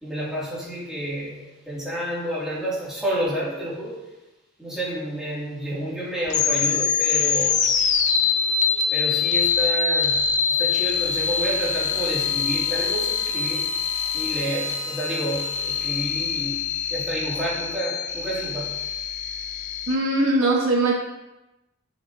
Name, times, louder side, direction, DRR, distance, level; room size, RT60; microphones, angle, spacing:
voice 1, 0.0-4.0 4.6-7.8 8.9-10.2 10.5-13.6 14.1-18.7, right 1 dB, ahead, -8 dB, 2.6 m, -30 dB
sound 1, 6.3-19.9, left 6 dB, 35° left, 0.6 m, -24 dB
sound 2, 10.3-16.4, left 2 dB, 80° left, 2.8 m, -43 dB
voice 2, 19.9-20.9, right 2 dB, 60° right, -2 dB, 1.5 m, -20 dB
12.5 x 7.0 x 2.8 m, 0.99 s
head